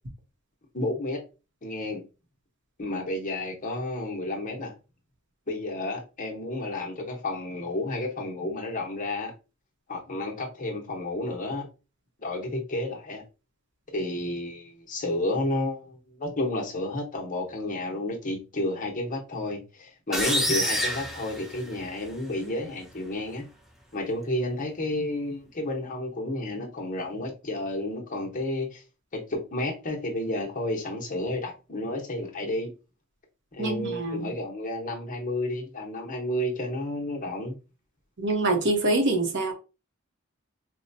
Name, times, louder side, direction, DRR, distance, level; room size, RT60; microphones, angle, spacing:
voice 1, 0.7-1.2 1.6-2.0 2.8-4.7 5.5-9.3 9.9-11.7 12.2-13.2 13.9-23.5 23.9-28.8 29.1-32.7 33.5-37.5, left 1 dB, 40° left, 0.9 m, -31 dB
sound 1, 20.1-22.1, equal, ahead, 0.6 m, -28 dB
voice 2, 33.6-34.3 38.2-39.5, right 2 dB, 55° right, 1.0 m, -25 dB
4.3 x 2.2 x 2.7 m
head